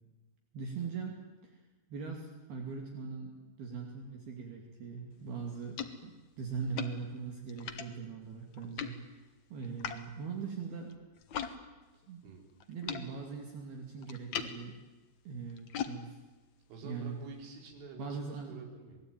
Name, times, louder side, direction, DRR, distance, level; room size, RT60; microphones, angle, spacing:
voice 1, 0.5-1.6 1.9-9.0 9.5-10.9 12.1-12.2 12.7-14.8 15.3-16.2 16.8-17.2 18.0-18.5, right 5 dB, 55° right, 2 dB, 4.2 m, -41 dB
sound 1, 5.1-11.6 11.8-17.7, left 8 dB, 85° left, 1.6 m, -44 dB
voice 2, 16.7-19.0, right 4 dB, 85° right, 2 dB, 6.9 m, -48 dB
26.5 x 20.0 x 9.3 m, 1.2 s
omnidirectional pair, 5.6 m